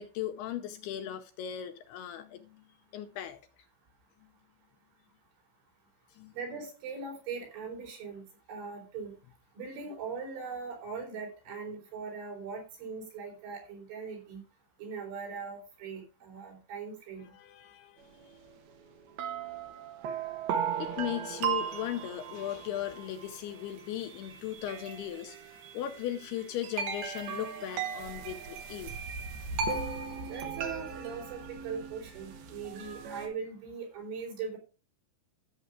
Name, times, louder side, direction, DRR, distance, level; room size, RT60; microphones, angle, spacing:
voice 1, 0.0-2.6 2.9-3.4 6.1-6.3 17.2-18.4 20.8-29.0, left 11 dB, 75° left, 2.5 m, -38 dB
voice 2, 6.3-8.2 8.5-9.1 9.6-14.4 14.8-17.3 30.3-34.6, right 5 dB, 85° right, 6.4 m, -40 dB
sound 1, 18.5-18.6 19.2-33.3, right 6 dB, 65° right, 2.9 m, -37 dB
14.0 x 7.0 x 3.7 m
omnidirectional pair, 5.2 m